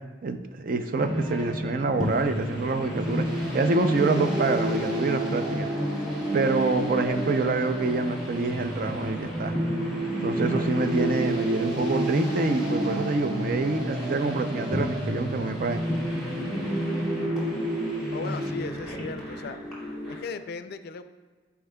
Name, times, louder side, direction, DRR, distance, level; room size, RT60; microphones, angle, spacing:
voice 1, 0.2-3.2 3.5-5.7 6.3-9.6 10.2-15.8, right 3 dB, 50° right, 8 dB, 0.4 m, -26 dB
sound 1, 1.0-20.2, equal, ahead, 2.1 m, -30 dB
sound 2, 2.0-20.2, left 1 dB, 80° right, 1.5 m, -47 dB
voice 2, 17.2-17.7 18.1-19.6 20.1-21.0, left 4 dB, 55° left, 10 dB, 0.4 m, -37 dB
12.5 x 4.6 x 2.2 m, 1.4 s
head